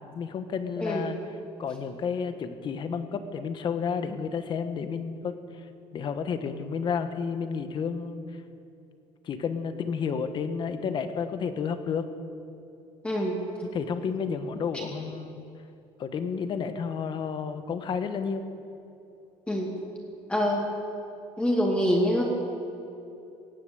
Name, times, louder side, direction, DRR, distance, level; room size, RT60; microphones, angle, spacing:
voice 1, 0.1-1.2 1.6-5.6 5.9-8.2 9.2-12.1 13.6-15.5 16.0-18.5, left 6 dB, 45° left, 9 dB, 1.2 m, -31 dB
voice 2, 20.3-20.7 21.4-22.2, equal, 10° left, -2 dB, 2.5 m, -25 dB
18.0 x 9.9 x 7.9 m, 2.8 s
cardioid pair, 125°, 12 cm